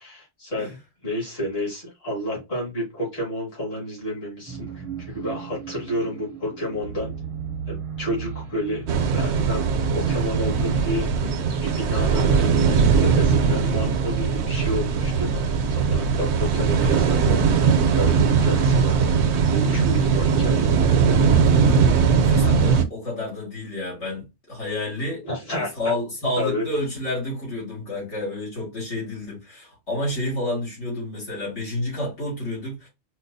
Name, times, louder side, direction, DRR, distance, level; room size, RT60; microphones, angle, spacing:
voice 1, 0.0-7.1 7.7-8.9 9.1-9.7 9.9-11.1 11.6-12.3 13.0-19.1 19.5-20.8 25.2-25.7 26.4-26.7, equal, 60° left, 2.1 m, -30 dB
sound 1, 4.5-21.2, right 6 dB, 35° right, 0.5 m, -38 dB
sound 2, 8.9-22.8, right 5 dB, 75° right, 0.8 m, -20 dB
voice 2, 21.4-25.2 25.5-32.9, left 1 dB, 85° left, 2.1 m, -30 dB
4.4 x 2.2 x 2.6 m
omnidirectional pair, 1.2 m